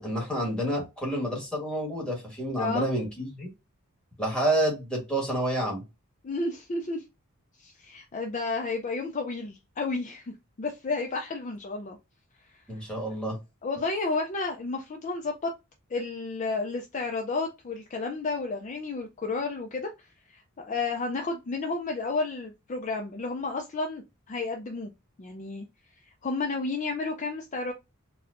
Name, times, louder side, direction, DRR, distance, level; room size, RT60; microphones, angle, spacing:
voice 1, 0.0-3.5 4.2-5.8 12.7-13.4, right 1 dB, 5° left, -3 dB, 1.3 m, -29 dB
voice 2, 2.6-2.9 6.2-7.0 7.6-12.0 12.5-12.6 13.6-15.5 15.9-24.9 25.2-25.6 26.2-27.7, left 3 dB, 35° left, 3 dB, 0.4 m, -32 dB
4.1 x 2.2 x 2.5 m, 0.24 s
head